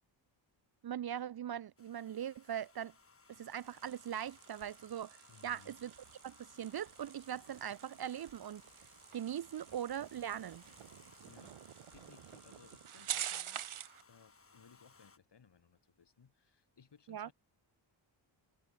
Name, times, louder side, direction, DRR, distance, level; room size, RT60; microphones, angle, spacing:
voice 1, 0.8-2.9 3.3-5.9 6.2-8.6 9.1-10.6 17.1-17.3, right 10 dB, 50° right, 0.6 m, -41 dB
Domestic sounds home sounds, 1.8-15.2, left 4 dB, 30° left, 1.9 m, -63 dB
sound 1, 3.3-14.0, right 10 dB, 85° right, 1.6 m, -48 dB
voice 2, 5.3-5.8 11.2-17.3, left 6 dB, 55° left, 5.5 m, -63 dB
wide cardioid pair, 110°, 48 cm